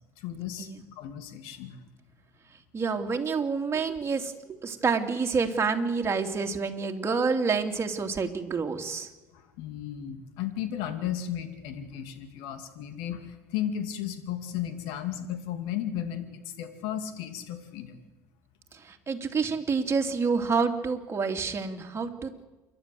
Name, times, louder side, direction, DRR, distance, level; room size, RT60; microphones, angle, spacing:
voice 1, 0.2-1.8 9.3-18.0, left 10 dB, 70° left, 8 dB, 2.6 m, -35 dB
voice 2, 2.7-9.1 18.8-22.4, right 5 dB, 30° right, 3 dB, 2.9 m, -28 dB
28.0 x 12.0 x 7.9 m, 1.1 s
hypercardioid pair, 65°, 8 cm